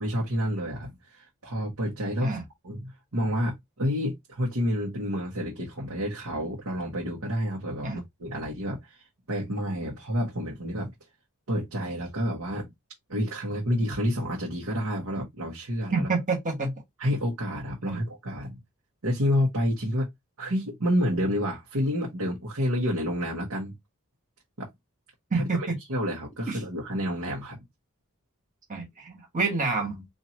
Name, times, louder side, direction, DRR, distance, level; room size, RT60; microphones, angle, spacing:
voice 1, 0.0-2.4 2.6-9.0 9.3-10.9 11.5-12.7 13.1-16.1 17.0-18.6 19.0-20.1 20.4-23.8 24.6-24.7 25.3-27.6, equal, 85° right, 1.2 m, -29 dB
voice 2, 15.9-16.8 17.8-18.0 25.3-25.8 26.5-26.6 28.7-30.1, right 3 dB, 35° right, 1.4 m, -28 dB
4.2 x 2.7 x 2.9 m
head